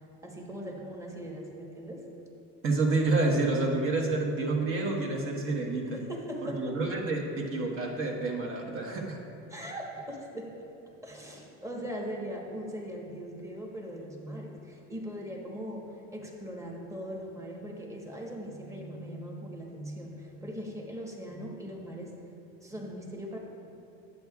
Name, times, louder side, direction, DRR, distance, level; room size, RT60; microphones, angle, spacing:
voice 1, 0.2-2.0 5.9-6.8 9.5-10.5 11.0-22.1 22.6-23.4, equal, 10° right, -1 dB, 1.2 m, -40 dB
voice 2, 2.6-6.0 6.4-9.2, right 3 dB, 40° right, 0 dB, 1.3 m, -28 dB
10.0 x 8.1 x 2.4 m, 2.7 s
supercardioid pair, 105°, 32 cm